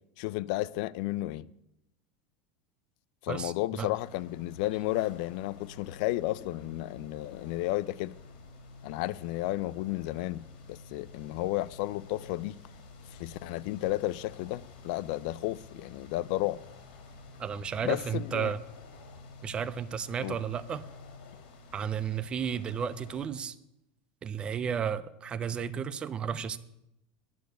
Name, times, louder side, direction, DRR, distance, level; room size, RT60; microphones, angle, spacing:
voice 1, 0.2-1.5 3.2-8.1 8.8-12.6 13.1-16.6 17.8-18.5 20.2-20.4, left 17 dB, 55° left, 0.3 m, -32 dB
voice 2, 3.3-3.9 17.4-18.6 19.4-20.8 21.7-23.6 24.2-26.6, right 7 dB, 20° right, 0.4 m, -33 dB
sound 1, 4.0-23.3, left 3 dB, 80° left, 2.4 m, -50 dB
10.5 x 6.6 x 7.9 m
supercardioid pair, 170°, 5 cm